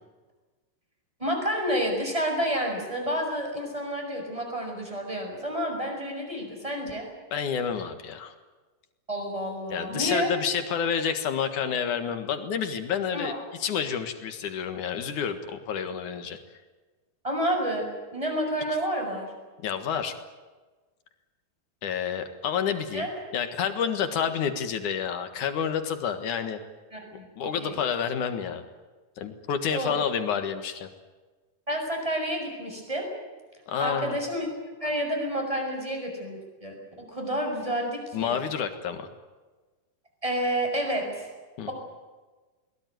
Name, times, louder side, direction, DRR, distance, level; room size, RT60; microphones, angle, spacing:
voice 1, 1.2-7.1 9.1-10.3 13.1-13.4 17.2-19.3 22.9-23.1 26.9-27.3 27.6-27.8 29.7-29.9 31.7-33.1 33.8-34.5 34.8-38.4 40.2-41.3, equal, 5° right, 2 dB, 6.0 m, -29 dB
voice 2, 7.3-8.3 9.7-13.3 13.6-16.4 19.6-20.2 21.8-23.1 23.3-26.6 27.4-28.6 29.2-30.9 33.7-34.2 38.1-39.1 41.6-41.7, left 7 dB, 55° left, 8 dB, 2.6 m, -29 dB
22.0 x 19.5 x 9.4 m, 1.3 s
omnidirectional pair, 4.8 m